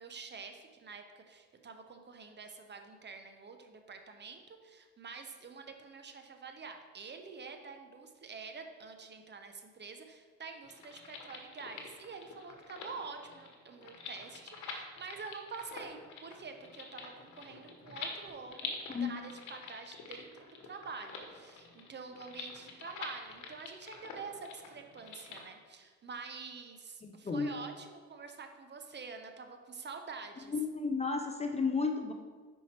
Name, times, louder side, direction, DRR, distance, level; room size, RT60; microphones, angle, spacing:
voice 1, 0.0-30.5, right 4 dB, 35° right, 6 dB, 0.7 m, -47 dB
sound 1, 10.6-25.4, left 4 dB, 80° left, 1.1 m, -47 dB
voice 2, 18.9-19.2 27.0-27.5 30.5-32.1, left 4 dB, 20° left, 5 dB, 0.4 m, -33 dB
5.4 x 4.6 x 4.3 m, 1.5 s
cardioid pair, 90°, 30 cm